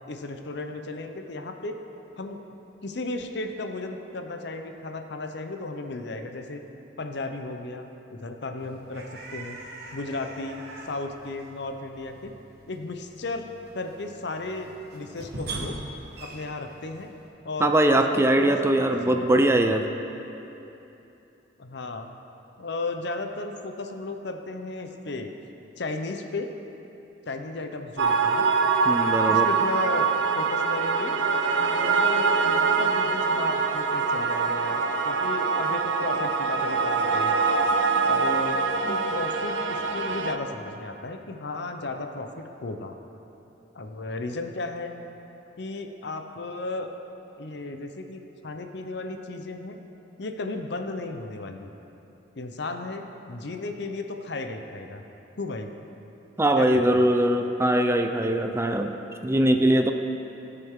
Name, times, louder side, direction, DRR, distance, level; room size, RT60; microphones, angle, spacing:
voice 1, 0.1-1.8 2.2-2.4 2.8-6.6 7.0-9.6 9.9-12.3 12.7-13.5 13.7-15.8 16.2-17.1 17.4-19.3 21.6-22.1 22.6-25.3 25.8-26.5 27.3-28.5 29.3-30.1 30.4-31.1 31.7-32.4 32.8-37.3 38.0-38.6 38.9-42.9 43.7-44.9 45.6-46.9 47.3-49.8 50.2-51.7 52.3-55.0 55.4-55.7 56.6-57.1, left 2 dB, 65° left, 5 dB, 0.8 m, -34 dB
sound 1, 8.6-17.3, right 2 dB, 60° right, 1.5 m, -42 dB
voice 2, 17.6-19.8 28.9-29.5 56.4-58.9 59.2-59.9, right 1 dB, 15° right, 5 dB, 0.4 m, -21 dB
sound 2, 28.0-40.4, right 5 dB, 90° right, 0.6 m, -24 dB
18.5 x 6.7 x 3.7 m, 3.0 s
head